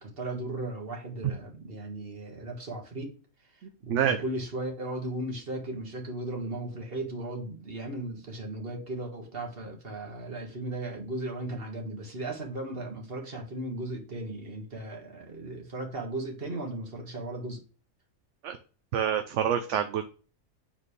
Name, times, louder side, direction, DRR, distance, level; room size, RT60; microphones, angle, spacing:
voice 1, 0.0-3.1 3.5-17.6, right 1 dB, 45° right, 1.8 m, -36 dB
voice 2, 18.9-20.0, right 9 dB, 65° right, 0.9 m, -26 dB
7.3 x 4.0 x 3.2 m
omnidirectional pair, 1.5 m